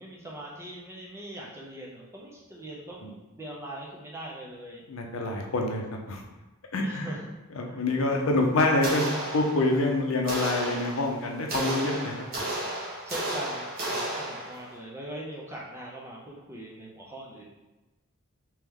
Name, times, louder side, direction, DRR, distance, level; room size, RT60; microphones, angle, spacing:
voice 1, 0.0-4.8 6.8-7.3 7.7-7.8 13.0-17.4, right 1 dB, 10° right, -3 dB, 0.6 m, -41 dB
voice 2, 4.9-6.2 6.7-7.1 7.5-9.1 9.3-12.5, left 2 dB, 75° left, 1 dB, 0.6 m, -26 dB
sound 1, 8.8-9.9 10.3-14.8, right 1 dB, 40° right, 1.1 m, -33 dB
3.3 x 2.9 x 3.6 m, 1.1 s
head